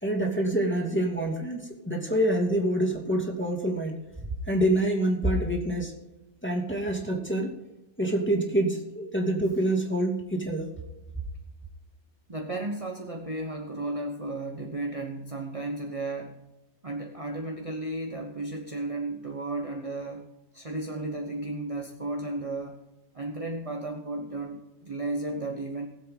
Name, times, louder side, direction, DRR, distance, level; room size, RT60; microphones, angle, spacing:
voice 1, 0.0-4.0 4.5-5.9 6.4-7.5 8.0-10.7, right 1 dB, 10° left, 0 dB, 2.6 m, -26 dB
voice 2, 12.3-16.5 16.8-22.8 23.1-25.9, right 2 dB, 30° right, 2 dB, 1.1 m, -34 dB
20.5 x 7.7 x 3.8 m, 0.99 s
omnidirectional pair, 1.2 m